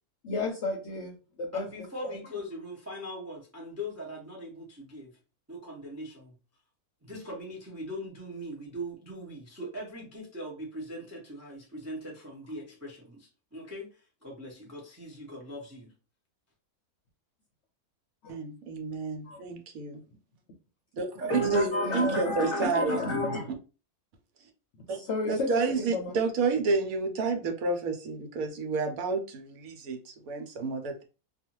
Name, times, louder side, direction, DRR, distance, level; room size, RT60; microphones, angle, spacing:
voice 1, 0.2-1.7 2.0-2.2 18.2-18.3 19.2-19.4 21.1-23.5 24.8-26.1, left 2 dB, 65° left, 0.8 m, -31 dB
voice 2, 1.5-5.1 5.5-6.3 7.0-15.9, equal, 25° right, 0.3 m, -41 dB
voice 3, 18.3-20.0 21.0-23.0 24.9-25.0 25.3-31.0, right 4 dB, 70° right, 1.0 m, -30 dB
2.4 x 2.3 x 2.9 m
omnidirectional pair, 1.6 m